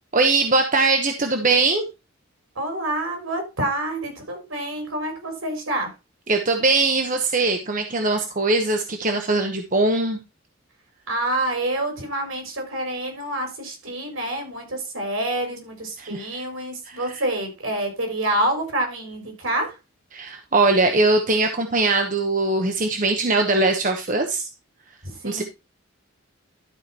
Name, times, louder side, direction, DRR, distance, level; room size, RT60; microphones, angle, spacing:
voice 1, 0.1-1.9 6.3-10.2 16.0-16.4 16.8-17.2 20.1-24.5 25.2-25.4, right 3 dB, 40° right, 5 dB, 1.0 m, -21 dB
voice 2, 2.5-5.9 11.1-19.7 25.0-25.4, right 1 dB, 75° right, 3 dB, 4.4 m, -27 dB
12.0 x 5.1 x 4.2 m, 0.26 s
head